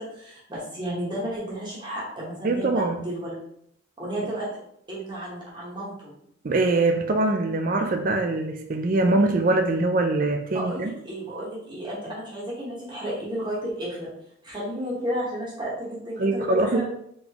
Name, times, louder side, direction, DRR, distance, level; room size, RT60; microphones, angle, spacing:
voice 1, 0.0-3.4 4.0-4.6 4.9-6.1 10.5-14.1 14.4-16.8, equal, 25° right, -6 dB, 1.3 m, -32 dB
voice 2, 2.4-3.0 6.4-10.9 16.2-16.8, right 2 dB, 45° right, 5 dB, 0.4 m, -23 dB
3.9 x 3.7 x 3.0 m, 0.72 s
head